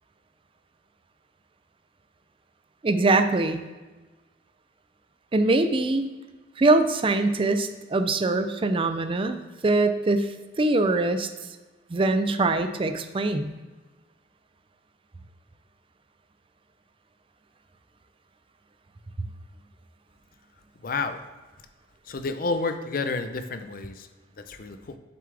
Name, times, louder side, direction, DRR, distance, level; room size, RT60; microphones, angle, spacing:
voice 1, 2.8-3.6 5.3-6.1 6.6-9.4 9.6-10.3 10.6-11.3 11.9-13.5, right 2 dB, 30° right, 9 dB, 0.4 m, -23 dB
voice 2, 20.8-21.2 22.0-24.1 24.4-25.0, left 3 dB, 55° left, 9 dB, 0.5 m, -30 dB
6.9 x 6.9 x 3.3 m, 1.2 s
head